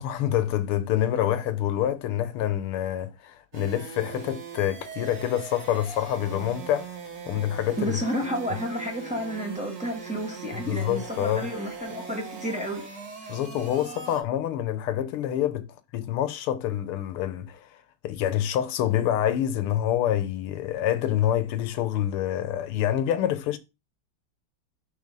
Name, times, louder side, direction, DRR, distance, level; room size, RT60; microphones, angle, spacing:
voice 1, 0.0-6.9 7.3-8.0 10.7-11.5 13.3-15.7 15.9-17.7 18.0-23.6, left 11 dB, 80° left, 1.7 m, -26 dB
sound 1, 3.5-14.2, right 5 dB, 45° right, 1.8 m, -40 dB
voice 2, 7.8-12.9 13.2-13.3, equal, 5° right, 1.6 m, -31 dB
6.6 x 4.1 x 5.3 m
omnidirectional pair, 2.4 m